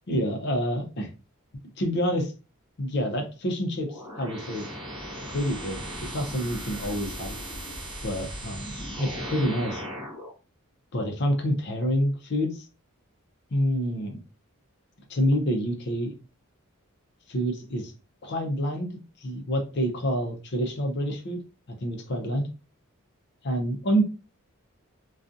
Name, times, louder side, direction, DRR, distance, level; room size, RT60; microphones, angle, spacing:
voice 1, 0.1-1.1 1.8-2.3 2.8-4.7 5.3-7.3 8.0-9.8 10.9-12.7 13.5-14.2 15.1-16.1 17.3-17.9 18.2-21.4 21.8-22.5 23.4-24.0, equal, 50° left, 3 dB, 0.6 m, -27 dB
sound 1, 3.9-10.3, equal, 20° right, 0.6 m, -37 dB
2.4 x 2.3 x 2.6 m, 0.32 s
head